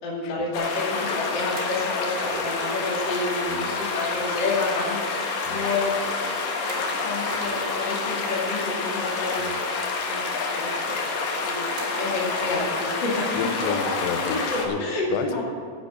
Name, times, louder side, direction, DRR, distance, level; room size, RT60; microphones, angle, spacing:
voice 1, 0.0-5.0 5.5-11.1 11.4-13.7 14.2-14.3 14.8-15.4, left 3 dB, 35° left, -4 dB, 2.1 m, -30 dB
sound 1, 0.5-14.7, left 4 dB, 60° left, 2.7 m, -28 dB
sound 2, 1.5-3.3 6.7-8.4 9.5-9.6 9.8-9.9 10.7-10.8 11.8-13.4, right 3 dB, 85° right, 4.5 m, -40 dB
voice 2, 3.5-3.8 5.5-5.7 9.4-9.6 13.3-14.8 15.1-15.4, left 6 dB, 80° left, 7 dB, 3.0 m, -31 dB
10.0 x 9.6 x 7.3 m, 2.2 s
omnidirectional pair, 5.1 m